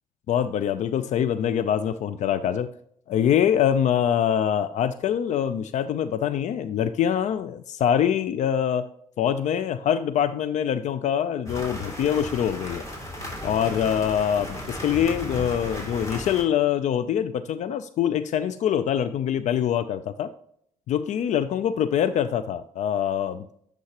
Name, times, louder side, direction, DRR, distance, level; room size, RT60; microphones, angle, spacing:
voice 1, 0.3-2.7 3.1-8.9 9.2-12.8 13.4-20.3 20.9-23.5, left 9 dB, 60° left, 14 dB, 0.4 m, -24 dB
sound 1, 11.5-16.4, left 1 dB, 20° left, 2.7 m, -35 dB
10.0 x 4.8 x 2.9 m, 0.66 s
hypercardioid pair, 45°, 14 cm